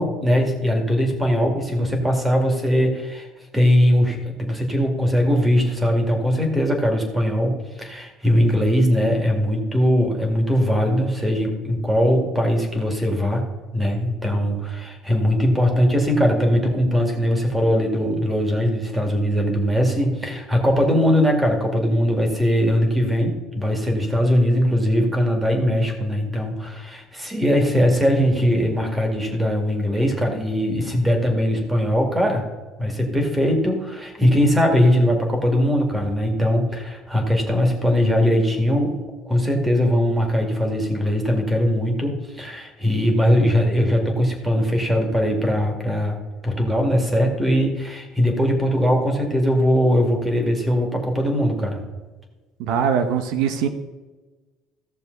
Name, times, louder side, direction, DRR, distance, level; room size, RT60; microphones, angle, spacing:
voice 1, 0.0-3.3 3.5-13.4 13.7-32.4 32.8-39.0 39.2-46.2 46.4-51.8, equal, 10° right, 3 dB, 2.3 m, -20 dB
voice 2, 52.6-53.7, right 7 dB, 75° right, 8 dB, 0.9 m, -21 dB
15.5 x 6.8 x 4.0 m, 1.3 s
cardioid pair, 145°, 0 cm